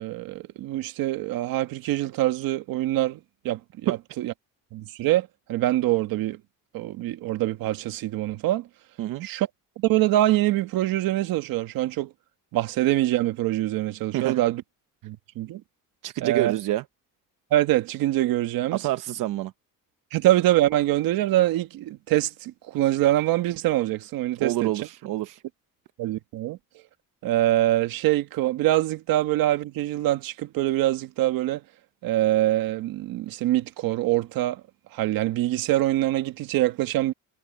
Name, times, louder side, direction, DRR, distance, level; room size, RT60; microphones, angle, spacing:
voice 1, 0.0-4.3 4.7-6.4 6.7-8.7 9.2-9.5 9.8-12.1 12.5-14.6 15.0-15.6 16.2-16.5 17.5-18.8 20.1-24.7 26.0-26.6 27.2-31.6 32.0-34.6 34.9-37.1, right 15 dB, 90° right, 1.6 m, -24 dB
voice 2, 16.0-16.8 18.7-19.5 24.4-25.4, right 15 dB, 65° right, 0.9 m, -27 dB
cardioid pair, 180°, 34 cm